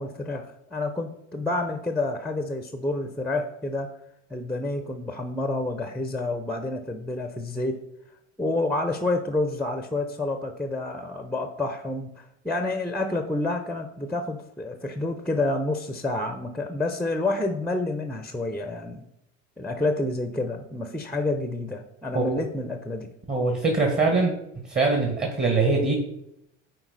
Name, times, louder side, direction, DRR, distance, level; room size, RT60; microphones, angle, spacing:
voice 1, 0.0-3.9 4.3-7.8 8.4-19.0 19.6-23.1, left 2 dB, 5° left, 7 dB, 0.7 m, -29 dB
voice 2, 23.3-24.3 24.7-26.0, right 3 dB, 25° right, 2 dB, 1.6 m, -23 dB
9.8 x 4.2 x 4.1 m, 0.79 s
figure-of-eight pair, 60°, 36 cm